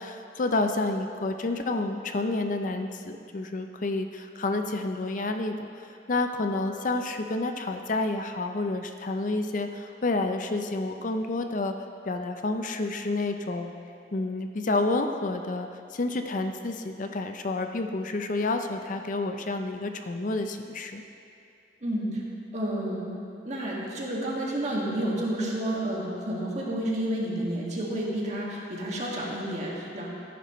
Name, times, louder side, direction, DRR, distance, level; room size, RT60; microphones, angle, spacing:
voice 1, 0.0-5.7 6.1-11.7 12.1-13.7 14.1-21.0, left 2 dB, 50° left, 6 dB, 0.5 m, -29 dB
voice 2, 21.8-22.2 22.5-23.1 23.5-30.1, right 1 dB, 40° right, -4 dB, 1.9 m, -30 dB
14.0 x 10.0 x 3.1 m, 2.6 s
head